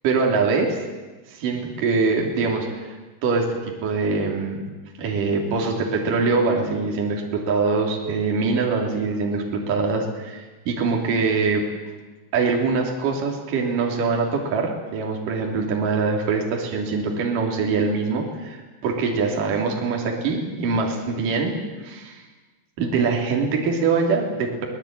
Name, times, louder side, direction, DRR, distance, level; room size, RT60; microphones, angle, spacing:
voice 1, 0.0-0.8 1.3-2.9 3.2-4.6 5.0-11.6 12.3-22.2 22.8-24.7, right 4 dB, 50° right, 0 dB, 4.4 m, -23 dB
24.5 x 19.0 x 9.0 m, 1.3 s
omnidirectional pair, 5.1 m